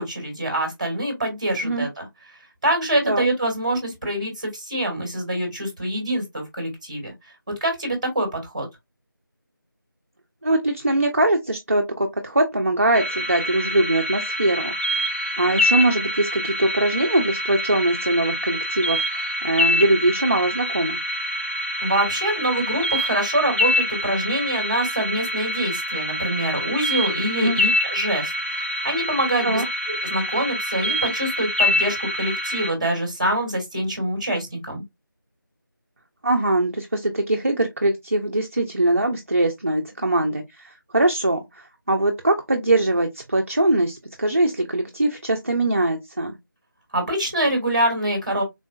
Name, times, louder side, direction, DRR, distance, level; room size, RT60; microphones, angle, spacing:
voice 1, 0.0-2.1 2.6-7.1 7.6-8.6 21.8-29.6 30.0-34.8 46.9-48.4, right 1 dB, 20° right, 1.2 m, -25 dB
voice 2, 10.4-14.7 15.4-21.0 27.4-27.6 29.4-29.7 36.2-46.4, right 1 dB, 40° right, 0.4 m, -22 dB
sound 1, 12.9-32.7, left 1 dB, 35° left, 0.6 m, -26 dB
3.7 x 2.4 x 2.4 m
figure-of-eight pair, 170°, 12 cm